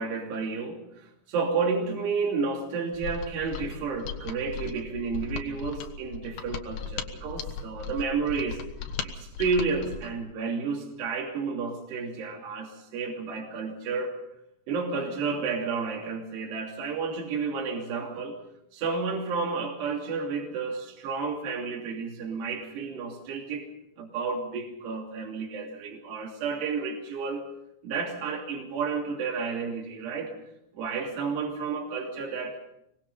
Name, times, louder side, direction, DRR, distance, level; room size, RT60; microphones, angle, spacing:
voice 1, 0.0-8.6 9.0-14.2 14.7-18.4 18.7-23.7 24.0-27.5 27.8-30.3 30.7-32.6, right 5 dB, 60° right, 0 dB, 4.8 m, -31 dB
Mechanisms, 2.9-10.1, left 7 dB, 60° left, 2.7 m, -37 dB
25.0 x 20.5 x 5.5 m, 0.79 s
omnidirectional pair, 5.5 m